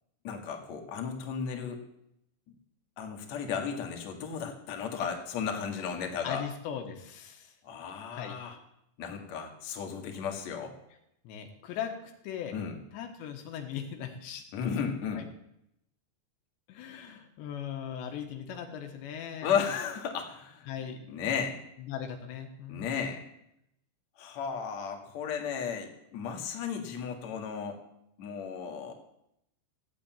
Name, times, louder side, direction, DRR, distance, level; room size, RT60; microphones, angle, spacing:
voice 1, 0.2-1.8 3.0-6.4 7.6-8.6 9.0-10.7 12.5-12.8 14.5-15.3 19.4-20.7 21.1-21.6 22.7-23.2 24.2-27.8 28.2-28.9, left 7 dB, 50° left, 3 dB, 2.6 m, -34 dB
voice 2, 6.2-7.5 8.1-8.4 11.3-12.6 12.9-14.8 15.2-15.3 16.7-19.5 20.7-21.0 21.9-22.9, left 8 dB, 80° left, 5 dB, 3.6 m, -39 dB
15.0 x 8.5 x 9.0 m, 0.79 s
omnidirectional pair, 5.1 m